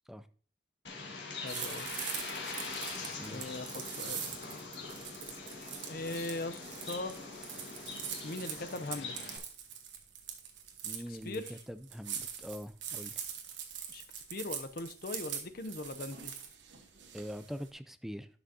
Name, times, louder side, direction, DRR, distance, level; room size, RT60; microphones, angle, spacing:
Bird, 0.8-9.4, left 4 dB, 75° left, 1.6 m, -43 dB
voice 1, 1.4-1.9 3.3-4.2 5.9-7.2 8.2-9.1 11.1-11.6 13.9-16.3, left 2 dB, 55° left, 0.6 m, -40 dB
sound 1, 1.5-17.7, right 8 dB, 90° right, 1.2 m, -43 dB
voice 2, 3.2-3.6 4.1-4.2 10.8-13.1 17.1-18.3, equal, ahead, 0.4 m, -43 dB
11.0 x 6.1 x 2.7 m
head